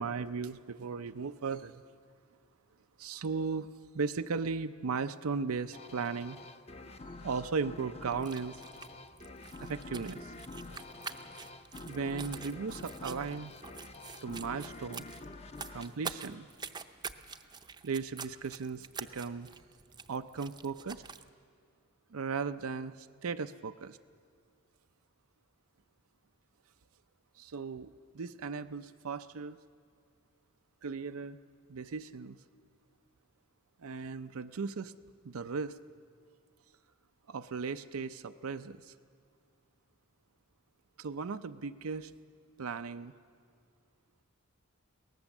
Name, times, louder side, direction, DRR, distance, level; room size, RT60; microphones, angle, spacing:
voice 1, 0.0-1.8 3.0-6.4 7.2-8.6 9.6-10.3 11.9-13.5 14.2-15.1 15.7-16.5 17.8-19.5 20.1-21.0 22.1-24.0 27.4-29.6 30.8-31.4 31.7-32.4 33.8-34.9 35.2-35.8 37.3-38.9 41.0-42.1 42.6-43.1, right 5 dB, 90° right, 9 dB, 0.6 m, -37 dB
sound 1, 5.7-17.0, left 2 dB, 30° left, 0.7 m, -48 dB
sound 2, 8.1-21.3, right 5 dB, 20° right, 0.6 m, -47 dB
23.0 x 18.0 x 7.2 m, 2.1 s
head